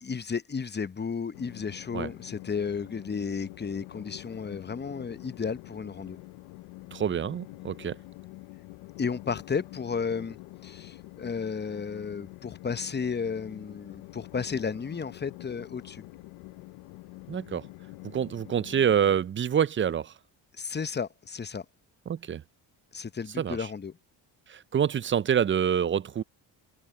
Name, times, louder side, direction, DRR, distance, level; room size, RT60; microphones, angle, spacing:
voice 1, 0.0-6.2 9.0-10.4 10.6-16.0 20.6-21.6 22.9-24.0, left 5 dB, 20° left, 0.8 m, -33 dB
Train, 1.3-19.2, left 20 dB, 90° left, 0.9 m, -46 dB
voice 2, 6.9-8.0 17.3-17.7 18.1-20.1 22.1-22.4 23.4-23.7 24.5-26.2, right 8 dB, 25° right, 0.4 m, -26 dB
supercardioid pair, 65°, 48 cm